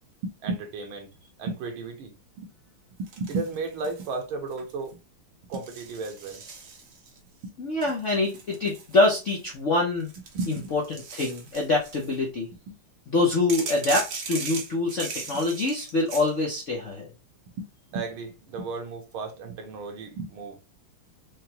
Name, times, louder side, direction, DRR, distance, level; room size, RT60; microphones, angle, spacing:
voice 1, 0.2-1.1 1.4-2.5 3.0-5.0 5.5-6.4 7.4-7.6 10.3-10.7 12.7-12.8 17.6-20.6, right 3 dB, 75° right, 1.7 m, -34 dB
sound 1, 3.1-4.1 4.5-4.9 5.5-7.2 7.8-9.5 10.0-12.2 13.5-16.3, right 4 dB, 60° right, 0.9 m, -38 dB
voice 2, 7.6-10.1 10.5-12.5 13.1-17.1, left 2 dB, 65° left, 0.7 m, -25 dB
5.0 x 2.2 x 2.8 m
omnidirectional pair, 2.3 m